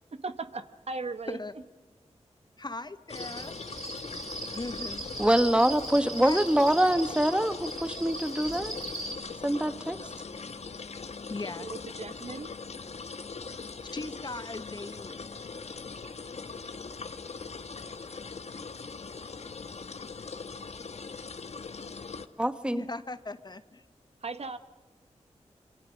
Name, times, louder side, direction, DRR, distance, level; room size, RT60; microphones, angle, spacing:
voice 1, 0.1-1.4 11.6-12.5 24.2-24.6, right 3 dB, 60° right, 10 dB, 1.1 m, -37 dB
voice 2, 2.6-3.6 4.5-5.0 6.2-7.2 11.3-11.7 13.8-15.1 22.7-23.8, left 2 dB, 35° left, 12 dB, 1.1 m, -39 dB
sound 1, 3.1-22.3, left 4 dB, 65° left, 1.1 m, -41 dB
Cricket, 3.1-9.1, right 1 dB, 30° right, 5.3 m, -39 dB
voice 3, 5.2-8.8 9.4-10.1 22.4-22.8, right 1 dB, 10° right, 11 dB, 1.3 m, -25 dB
26.0 x 24.5 x 6.4 m, 1.2 s
cardioid pair, 55°, 12 cm